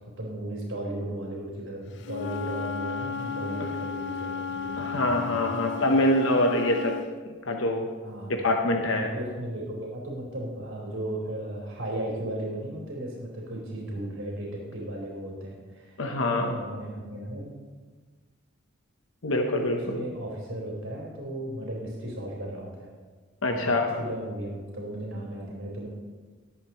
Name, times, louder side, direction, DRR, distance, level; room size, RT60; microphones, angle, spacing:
voice 1, 0.0-5.4 5.8-6.0 8.0-8.4 8.7-17.5 19.6-22.9 23.5-25.9, right 1 dB, 80° right, -3 dB, 3.8 m, -36 dB
Wind instrument woodwind instrument, 2.0-7.1, left 6 dB, 55° left, 0.5 m, -34 dB
voice 2, 4.8-6.9 7.5-7.9 8.3-9.1 16.0-16.5 19.2-20.1 23.4-23.9, left 1 dB, 75° left, 2 dB, 0.9 m, -25 dB
20.0 x 8.2 x 3.1 m, 1.4 s
head